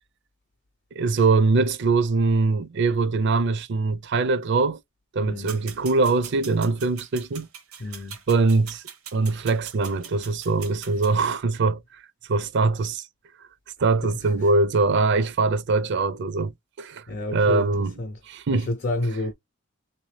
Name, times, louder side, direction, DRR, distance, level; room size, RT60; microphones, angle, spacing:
voice 1, 1.0-4.8 5.1-7.5 8.3-8.8 9.1-12.0 12.3-13.1 13.8-17.0 17.3-17.9 18.3-18.7, right 3 dB, 55° right, 0.5 m, -22 dB
voice 2, 5.2-5.6 7.8-8.2 14.0-14.5 17.1-18.2 18.5-19.3, left 2 dB, 50° left, 0.6 m, -30 dB
sound 1, 5.5-11.1, right 8 dB, 80° right, 0.8 m, -42 dB
3.4 x 2.7 x 3.1 m
head